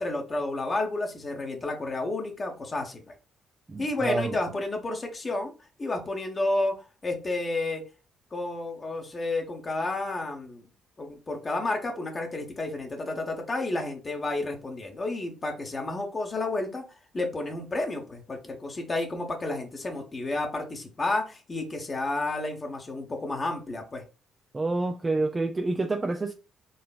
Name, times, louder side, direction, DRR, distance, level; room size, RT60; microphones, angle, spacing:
voice 1, 0.0-3.1 3.8-5.5 5.8-6.8 7.0-7.8 8.3-10.6 11.0-16.8 17.1-24.0, left 2 dB, 35° left, 1.1 m, -31 dB
voice 2, 3.7-4.4 24.5-26.3, right 3 dB, 25° right, 0.5 m, -28 dB
4.0 x 3.2 x 2.4 m
hypercardioid pair, 50°, 0 cm